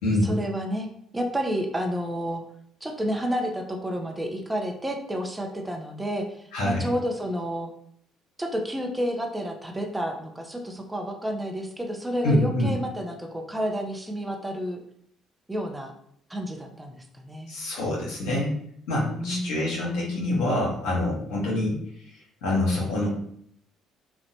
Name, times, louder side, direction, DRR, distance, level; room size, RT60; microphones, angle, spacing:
voice 1, 0.2-0.9 1.1-2.4 2.8-7.7 8.4-14.8 15.5-15.9 16.3-17.5 19.1-19.6, equal, 15° right, 2 dB, 0.5 m, -30 dB
voice 2, 6.5-6.8 12.2-12.7 17.5-18.5 18.9-21.8 22.1-23.1, left 1 dB, 75° left, -5 dB, 0.8 m, -26 dB
2.8 x 2.1 x 2.7 m, 0.67 s
hypercardioid pair, 60°, 0 cm